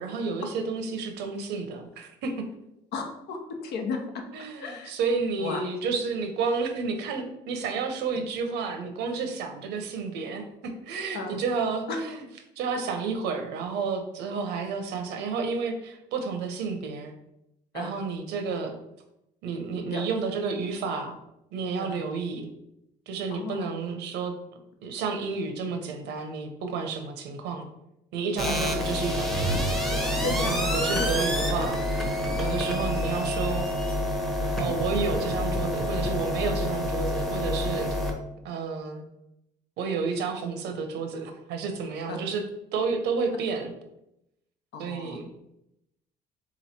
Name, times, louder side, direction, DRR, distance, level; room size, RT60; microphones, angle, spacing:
voice 1, 0.0-2.4 4.3-12.3 12.6-17.1 17.7-18.8 19.4-21.2 21.5-22.5 23.1-24.4 24.8-27.7 28.1-33.7 34.6-38.0 38.4-39.0 39.8-42.4 42.7-43.7 44.8-45.3, right 5 dB, 85° right, 6 dB, 0.8 m, -31 dB
voice 2, 2.9-4.2 4.6-4.9 5.4-5.6 11.1-11.4 17.7-17.9 19.9-20.0 21.9-22.0 23.3-23.7 28.4-28.7 30.2-30.5 31.0-31.2 32.4-32.6 34.4-34.6 42.1-42.2 44.7-45.2, left 4 dB, 75° left, 3 dB, 0.9 m, -34 dB
sound 1, 28.4-38.1, left 1 dB, ahead, 0.7 m, -27 dB
3.6 x 3.1 x 4.3 m, 0.83 s
cardioid pair, 110°, 17 cm